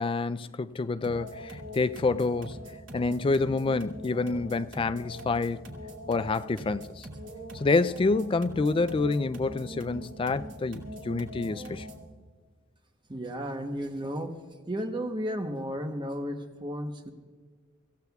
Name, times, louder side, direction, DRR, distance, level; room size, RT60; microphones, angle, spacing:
voice 1, 0.0-2.6 2.9-5.6 6.1-7.1 7.5-11.9, left 3 dB, 25° left, 0.3 m, -27 dB
sound 1, 1.0-12.1, equal, 65° right, 2.4 m, -42 dB
voice 2, 13.1-14.4 14.7-17.1, equal, 25° right, 0.9 m, -33 dB
24.5 x 15.5 x 2.3 m
head